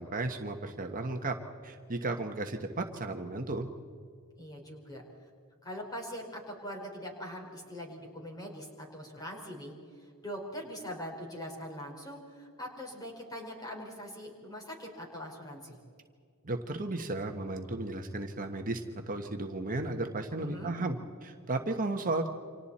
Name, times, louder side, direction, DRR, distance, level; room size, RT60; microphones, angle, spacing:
voice 1, 0.0-1.4 1.6-3.7 16.4-22.3, right 2 dB, 40° right, 4 dB, 1.3 m, -34 dB
voice 2, 4.4-5.0 5.6-15.8 20.3-20.7, equal, 20° left, -1 dB, 4.9 m, -42 dB
29.5 x 26.0 x 4.3 m, 2.2 s
head